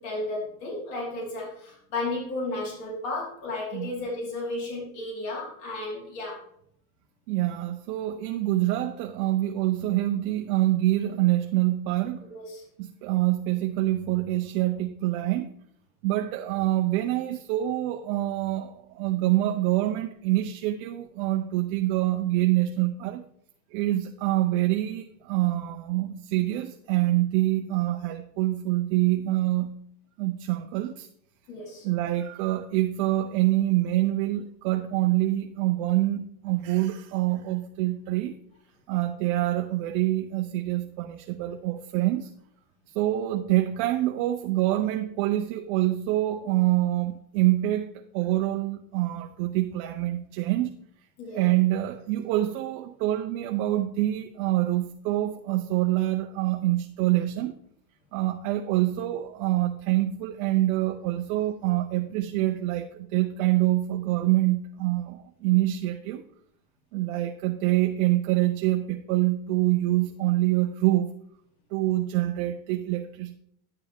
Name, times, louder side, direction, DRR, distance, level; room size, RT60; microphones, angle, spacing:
voice 1, 0.0-6.4 12.3-12.7 31.5-31.9 51.2-51.4, left 2 dB, 60° left, 4.4 m, -33 dB
voice 2, 7.3-12.3 12.8-15.5 16.0-23.2 23.7-29.8 30.2-31.1 31.8-38.3 38.9-42.3 42.9-50.7 51.3-57.5 58.1-66.2 66.9-71.1 71.7-73.3, right 15 dB, 60° right, 0.7 m, -26 dB
10.5 x 6.8 x 3.6 m
supercardioid pair, 115°, 42 cm